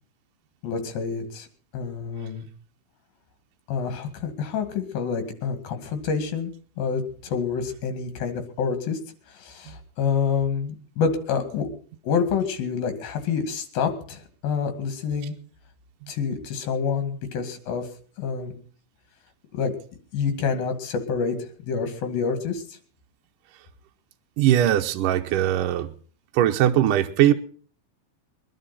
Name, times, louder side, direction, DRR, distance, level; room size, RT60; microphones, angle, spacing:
voice 1, 0.6-1.5 1.7-2.5 3.7-9.0 9.3-11.7 12.0-15.4 16.1-17.9 18.2-18.5 19.5-19.7 20.1-21.4 21.6-22.8, left 6 dB, 75° left, 8 dB, 3.8 m, -27 dB
voice 2, 24.4-25.9 26.3-27.3, right 12 dB, 75° right, 5 dB, 2.3 m, -20 dB
22.5 x 11.0 x 4.1 m, 0.42 s
omnidirectional pair, 4.2 m